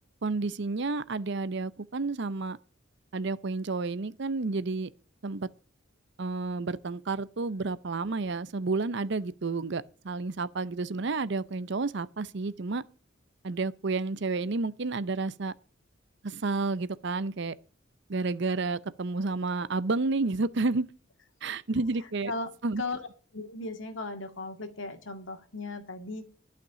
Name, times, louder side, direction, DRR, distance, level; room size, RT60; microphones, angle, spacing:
voice 1, 0.2-2.6 3.1-4.9 5.2-5.5 6.2-12.8 13.4-15.5 16.2-17.5 18.1-20.9 21.4-22.3 22.6-22.8, right 3 dB, 65° right, 0.7 m, -30 dB
voice 2, 22.0-22.5 22.8-23.1 23.3-26.3, left 3 dB, 85° left, 2.0 m, -37 dB
11.5 x 6.0 x 9.1 m
head